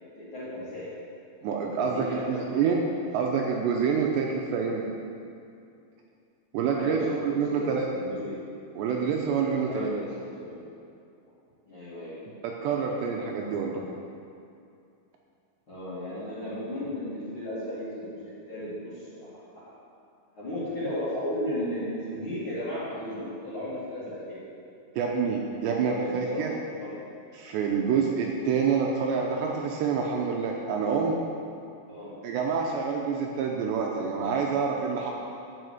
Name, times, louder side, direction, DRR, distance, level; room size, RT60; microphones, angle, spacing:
voice 1, 0.2-0.9 1.8-2.7 6.8-7.7 8.0-8.3 9.7-10.5 11.6-12.2 15.7-19.7 20.3-24.4 25.7-26.9 31.9-32.1, left 1 dB, 35° left, -11 dB, 2.6 m, -35 dB
voice 2, 1.4-2.8 3.1-4.9 6.5-7.9 8.8-9.9 12.4-13.8 25.0-26.5 27.3-31.2 32.2-35.1, right 6 dB, 80° right, -1 dB, 2.8 m, -27 dB
12.5 x 5.3 x 8.1 m, 2.5 s
omnidirectional pair, 5.5 m